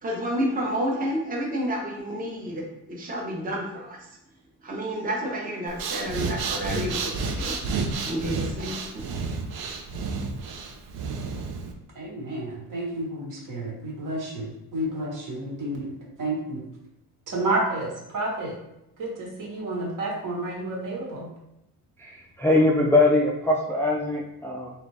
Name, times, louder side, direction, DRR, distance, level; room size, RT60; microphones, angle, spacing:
voice 1, 0.0-2.6 2.9-4.0 4.6-7.6 8.1-9.0, equal, 25° right, -1 dB, 0.8 m, -30 dB
Breathing, 5.7-11.7, right 4 dB, 80° right, 0.7 m, -30 dB
voice 2, 11.9-16.6 17.3-18.6 19.0-21.3, right 2 dB, 60° right, -2 dB, 1.4 m, -30 dB
voice 3, 22.0-24.7, left 2 dB, 5° left, -3 dB, 0.3 m, -22 dB
3.8 x 3.4 x 3.2 m, 0.86 s
wide cardioid pair, 165°, 37 cm